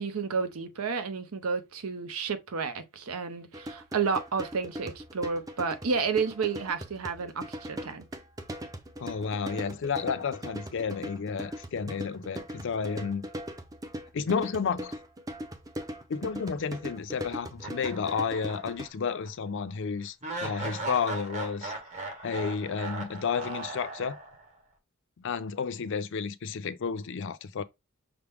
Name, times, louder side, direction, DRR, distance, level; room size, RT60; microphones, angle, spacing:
voice 1, 0.0-8.0, right 5 dB, 90° right, 0.7 m, -31 dB
sound 1, 3.5-18.9, equal, 15° right, 0.5 m, -40 dB
voice 2, 9.0-13.3 14.1-15.0 16.1-20.2 20.4-21.7 22.2-24.2 25.2-27.6, left 6 dB, 60° left, 0.4 m, -31 dB
sound 2, 17.6-18.9 19.2-19.3 20.2-24.5, right 3 dB, 35° right, 1.1 m, -38 dB
5.9 x 2.1 x 3.4 m
head